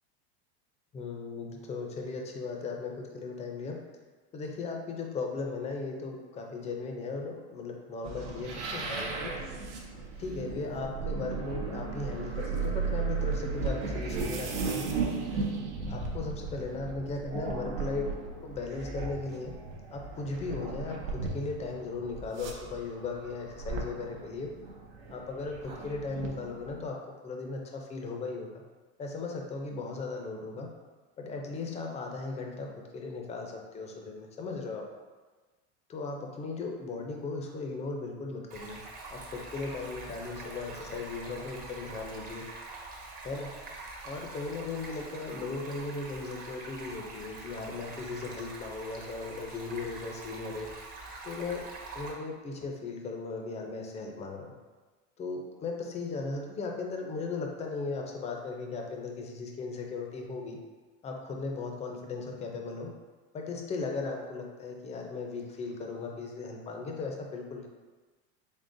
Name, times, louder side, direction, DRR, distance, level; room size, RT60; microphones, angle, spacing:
voice 1, 0.9-3.8 4.3-9.5 10.2-15.0 15.9-18.1 18.4-19.5 19.9-24.5 25.1-27.0 27.2-28.5 29.0-30.7 31.2-34.8 35.9-38.8 39.1-42.4 43.2-43.6 44.0-50.7 51.2-54.5 55.2-60.6 61.0-62.9 63.3-67.7, left 3 dB, 20° left, 1 dB, 0.4 m, -37 dB
sound 1, 8.0-26.9, right 4 dB, 90° right, 0.7 m, -36 dB
Stream, 38.5-52.1, right 3 dB, 25° right, 0.6 m, -44 dB
3.7 x 3.6 x 2.5 m, 1.3 s
supercardioid pair, 135°, 33 cm